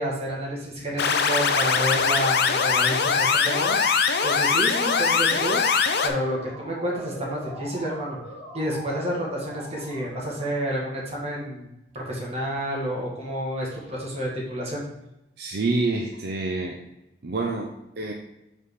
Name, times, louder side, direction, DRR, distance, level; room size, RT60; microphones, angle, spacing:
voice 1, 0.0-3.8 4.2-5.6 6.0-8.2 8.5-14.8, equal, 35° right, -4 dB, 1.8 m, -29 dB
sound 1, 1.0-6.1, left 5 dB, 60° left, 0.6 m, -22 dB
Motor vehicle (road) / Siren, 5.2-11.1, equal, 5° left, 2.3 m, -42 dB
voice 2, 15.4-16.8 17.2-18.1, right 3 dB, 60° right, 2 dB, 0.6 m, -27 dB
5.3 x 4.2 x 4.7 m, 0.90 s
head